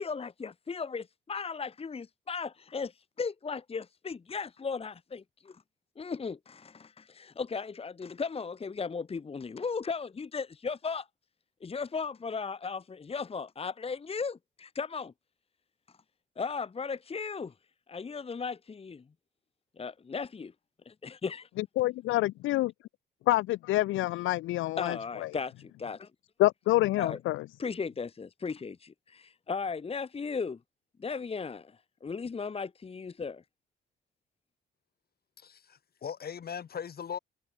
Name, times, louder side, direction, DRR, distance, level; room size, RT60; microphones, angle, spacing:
voice 1, 0.0-5.6 6.0-11.1 11.6-15.1 16.4-17.5 17.9-19.0 19.8-20.5 20.8-21.5 24.8-26.1 27.0-27.2 27.6-30.6 31.0-33.4, left 5 dB, 30° left, 1.3 m, -36 dB
voice 2, 21.6-22.7 23.3-25.3 26.4-27.4, left 17 dB, 85° left, 0.6 m, -27 dB
voice 3, 35.4-37.2, left 7 dB, 50° left, 3.9 m, -39 dB
cardioid pair, 90°, 20 cm